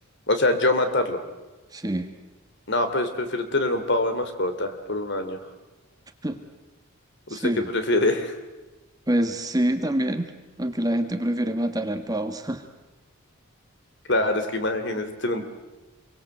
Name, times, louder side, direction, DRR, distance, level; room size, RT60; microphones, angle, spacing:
voice 1, 0.3-1.2 2.7-5.4 7.3-8.3 14.1-15.4, left 2 dB, 55° left, 8 dB, 3.0 m, -24 dB
voice 2, 1.7-2.1 6.2-6.4 7.3-7.7 9.1-10.3 10.6-12.6, right 1 dB, 15° right, 7 dB, 1.6 m, -26 dB
27.5 x 23.5 x 7.9 m, 1.1 s
head